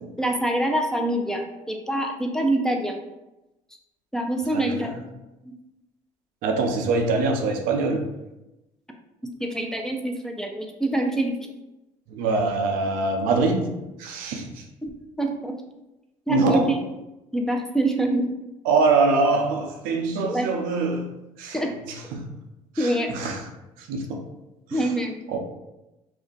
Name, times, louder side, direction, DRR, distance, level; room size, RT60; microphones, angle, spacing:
voice 1, 0.2-3.0 4.1-4.9 5.4-5.5 9.4-11.4 14.8-14.9 15.2-15.6 16.3-16.6 17.3-18.3 20.2-20.5 21.5-21.7 22.8-23.1 24.7-25.3, right 1 dB, 5° left, 2 dB, 0.5 m, -25 dB
voice 2, 4.5-4.9 6.4-8.1 12.1-14.7 16.3-16.7 18.6-21.1 21.4-21.6 21.9-22.3 22.7-23.5 23.8-24.3 24.7-24.9 25.3-25.4, right 3 dB, 75° right, 3 dB, 0.5 m, -24 dB
2.5 x 2.1 x 3.8 m, 0.97 s
supercardioid pair, 70°, 15 cm